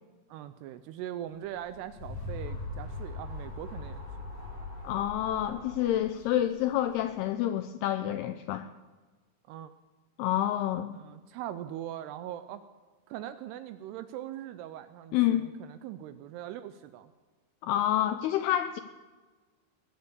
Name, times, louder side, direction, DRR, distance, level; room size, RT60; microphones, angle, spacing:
voice 1, 0.3-4.0 9.5-9.7 10.9-12.6 13.1-17.1, right 12 dB, 85° right, 11 dB, 2.4 m, -41 dB
sound 1, 1.5-7.1, left 2 dB, 35° right, 4.7 m, -41 dB
voice 2, 4.8-8.7 10.2-10.9 15.1-15.4 17.6-18.8, left 12 dB, 85° left, 9 dB, 2.3 m, -28 dB
20.0 x 8.3 x 8.1 m, 1.4 s
omnidirectional pair, 5.2 m